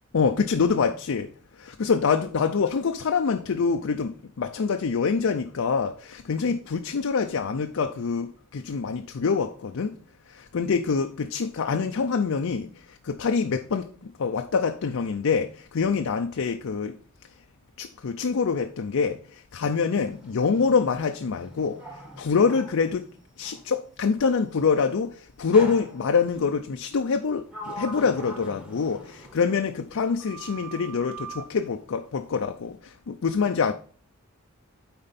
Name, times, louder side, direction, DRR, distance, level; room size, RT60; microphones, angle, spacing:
voice 1, 0.1-1.3 1.6-9.9 10.3-17.0 17.8-21.8 22.2-23.1 23.4-33.7, left 5 dB, 70° left, 0.5 m, -25 dB
Sliding door, 19.7-23.7 25.5-26.4 27.1-29.9 30.2-31.5, right 1 dB, 5° right, 1.3 m, -43 dB
8.8 x 4.4 x 4.1 m
head